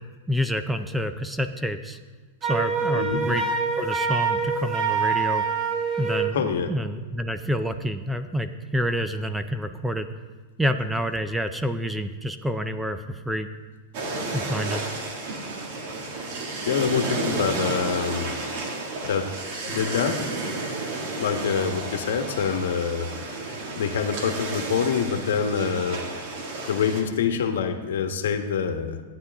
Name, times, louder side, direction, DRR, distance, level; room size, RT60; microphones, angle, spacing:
voice 1, 0.3-2.0 2.4-3.4 3.8-5.4 6.0-10.1 10.6-13.5 14.3-14.8, equal, 5° right, 10 dB, 0.4 m, -28 dB
Wind instrument woodwind instrument, 2.4-6.4, right 5 dB, 25° right, 1.0 m, -25 dB
voice 2, 6.3-6.7 16.7-18.4 19.0-19.3 19.7-20.2 21.2-23.1 23.7-26.0 26.7-29.0, left 7 dB, 80° left, 6 dB, 1.1 m, -25 dB
sound 1, 13.9-27.0, right 2 dB, 50° right, 1.8 m, -32 dB
15.0 x 9.6 x 3.5 m, 1.3 s
supercardioid pair, 165°, 0 cm